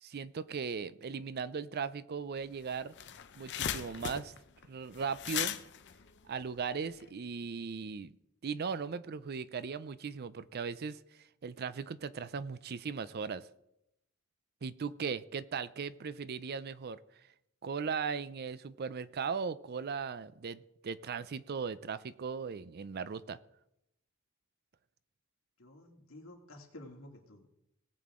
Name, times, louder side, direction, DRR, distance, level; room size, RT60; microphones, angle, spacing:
voice 1, 0.0-2.9 3.4-4.3 4.7-5.6 6.3-8.1 8.4-11.0 11.4-13.5 14.6-17.0 17.6-23.4, right 5 dB, 50° right, 16 dB, 0.5 m, -38 dB
sound 1, 2.4-2.5 2.8-7.0, left 9 dB, 55° left, 0.7 m, -38 dB
voice 2, 25.6-27.5, left 1 dB, 80° left, 0 dB, 2.4 m, -52 dB
19.0 x 7.7 x 3.7 m, 0.82 s
head